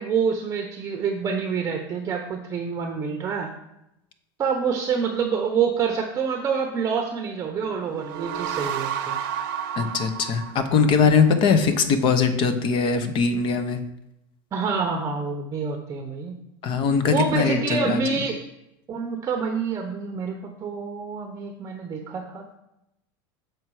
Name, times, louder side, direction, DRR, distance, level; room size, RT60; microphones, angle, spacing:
voice 1, 0.0-3.5 4.4-9.2 14.5-16.4 17.1-18.4 18.9-22.6, right 5 dB, 25° right, 4 dB, 0.8 m, -27 dB
sound 1, 7.8-11.3, right 9 dB, 65° right, 0.7 m, -31 dB
voice 2, 9.8-13.8 16.6-18.0, left 5 dB, 40° left, 9 dB, 0.9 m, -21 dB
7.3 x 4.6 x 4.8 m, 0.84 s
supercardioid pair, 130°, 12 cm